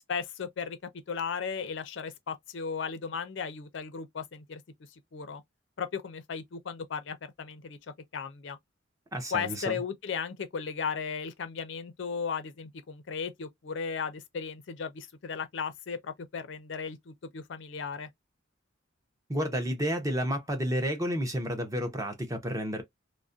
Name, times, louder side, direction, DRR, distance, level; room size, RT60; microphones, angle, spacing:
voice 1, 0.1-0.8 1.1-4.6 5.1-5.4 5.8-7.8 8.1-8.6 9.3-18.1, left 6 dB, 65° left, 0.4 m, -36 dB
voice 2, 9.1-9.8 19.3-22.8, equal, 15° right, 0.6 m, -31 dB
2.3 x 2.1 x 2.5 m
head